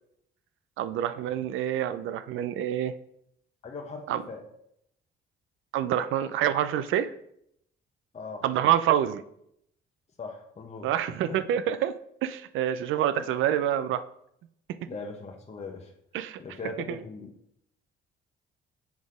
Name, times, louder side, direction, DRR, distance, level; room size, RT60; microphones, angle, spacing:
voice 1, 0.8-2.9 4.1-4.2 5.7-7.1 8.4-9.2 10.8-11.9 12.2-14.0 16.1-16.4 16.9-17.0, right 11 dB, 85° right, 12 dB, 0.4 m, -27 dB
voice 2, 3.6-4.4 8.1-8.5 10.2-10.9 11.3-11.4 13.2-13.3 14.9-15.9 16.4-17.3, left 4 dB, 35° left, 1 dB, 0.9 m, -40 dB
7.1 x 4.1 x 4.8 m, 0.74 s
cardioid pair, 90°, 20 cm